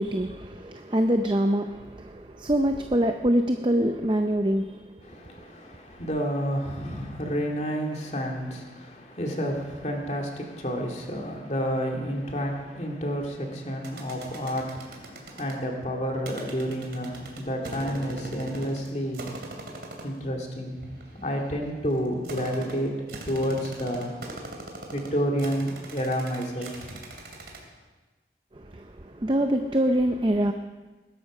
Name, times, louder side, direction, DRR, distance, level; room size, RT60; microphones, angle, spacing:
voice 1, 0.0-4.8 28.6-30.5, right 1 dB, 25° right, 5 dB, 0.6 m, -25 dB
voice 2, 5.0-19.3 20.0-24.1 24.9-27.0, equal, 40° left, 1 dB, 2.4 m, -30 dB
sound 1, 13.8-15.6 16.3-18.9 19.1-20.2 20.8-27.6, right 2 dB, 70° right, 2.9 m, -40 dB
21.0 x 12.0 x 5.0 m, 1.3 s
head